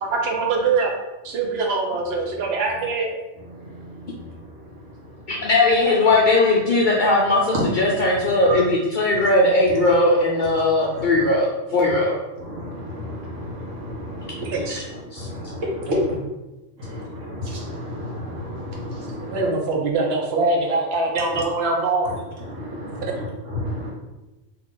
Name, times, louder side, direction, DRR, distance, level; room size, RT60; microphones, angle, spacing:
voice 1, 0.0-0.9 1.2-3.2 9.8-9.9 14.5-14.8 19.2-22.1 22.9-23.1, right 3 dB, 65° right, 1 dB, 0.8 m, -23 dB
voice 2, 3.4-5.5 7.5-8.6 9.8-9.9 10.9-11.3 12.4-14.7 15.1-16.1 16.8-19.5 21.3-21.4 22.0-23.9, left 1 dB, 85° right, -2 dB, 1.2 m, -31 dB
voice 3, 5.3-12.2 15.1-15.3, left 2 dB, 60° left, -3 dB, 0.5 m, -19 dB
3.0 x 2.4 x 3.7 m, 1.0 s
omnidirectional pair, 1.3 m